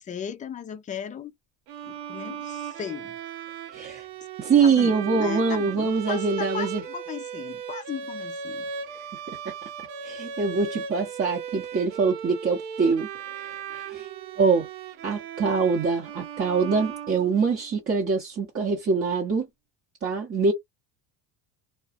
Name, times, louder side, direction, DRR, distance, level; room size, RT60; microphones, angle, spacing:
voice 1, 0.0-1.3 1.8-3.1 4.5-8.7, left 7 dB, 15° left, 0.4 m, -36 dB
Bowed string instrument, 1.7-17.8, right 7 dB, 80° right, 0.7 m, -37 dB
voice 2, 3.7-4.1 4.4-6.8 9.3-9.5 10.0-14.1 14.4-14.7 15.0-19.5 20.0-20.5, right 5 dB, 30° right, 0.9 m, -24 dB
2.3 x 2.2 x 2.4 m
supercardioid pair, 80°, 48 cm